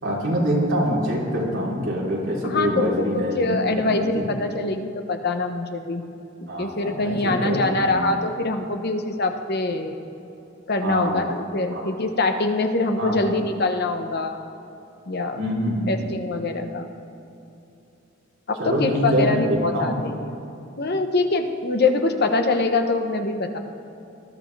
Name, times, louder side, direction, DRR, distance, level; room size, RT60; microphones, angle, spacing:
voice 1, 0.0-4.3 6.5-8.0 10.8-11.3 11.7-11.8 13.0-13.4 15.4-15.9 18.6-20.0, equal, 65° right, -5 dB, 3.4 m, -25 dB
voice 2, 2.4-6.0 6.4-10.0 10.7-14.4 15.1-15.4 15.9-16.9 18.5-20.2 20.8-23.6, left 3 dB, 50° left, 6 dB, 1.0 m, -24 dB
20.0 x 12.0 x 3.3 m, 2.9 s
head